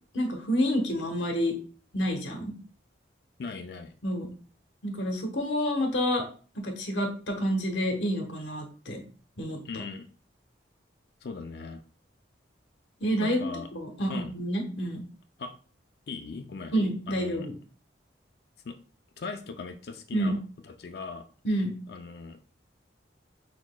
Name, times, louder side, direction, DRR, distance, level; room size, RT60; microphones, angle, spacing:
voice 1, 0.1-1.5 1.9-2.6 4.0-4.3 4.8-6.3 6.5-9.0 9.4-9.6 13.0-13.4 13.7-15.0 16.7-17.5 20.1-20.4 21.4-21.7, equal, 75° left, 3 dB, 1.0 m, -28 dB
voice 2, 3.4-3.9 9.6-10.1 11.2-11.8 13.2-13.7 14.1-14.3 15.4-15.5 16.1-16.7 17.1-17.5 18.6-18.8 19.2-20.4 20.6-21.2 21.9-22.4, left 4 dB, 55° left, 7 dB, 0.4 m, -39 dB
6.0 x 2.9 x 2.2 m, 0.39 s
head